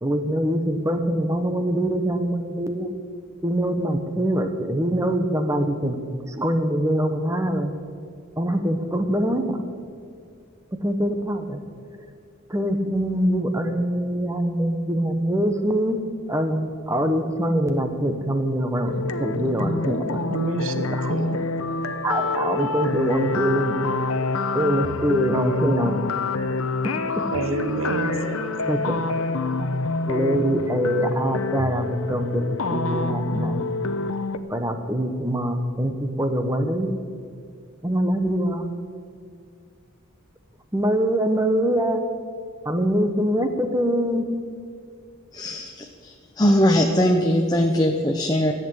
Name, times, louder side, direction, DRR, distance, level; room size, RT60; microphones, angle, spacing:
voice 1, 0.0-2.9 3.4-6.0 6.3-7.7 8.4-9.6 10.7-11.6 12.5-16.0 16.3-20.2 20.9-21.1 22.0-23.8 24.5-26.3 28.0-28.2 28.7-29.0 30.1-32.4 32.7-33.6 34.5-36.9 37.8-38.7 40.7-42.0 42.6-44.2, equal, 15° right, 7 dB, 1.0 m, -24 dB
sound 1, 18.9-34.4, left 3 dB, 80° left, 0.8 m, -27 dB
voice 2, 20.3-21.4 27.3-28.5, right 2 dB, 80° right, 9 dB, 1.1 m, -28 dB
voice 3, 45.3-48.5, equal, 20° left, 2 dB, 0.7 m, -21 dB
14.0 x 8.4 x 8.6 m, 2.2 s
head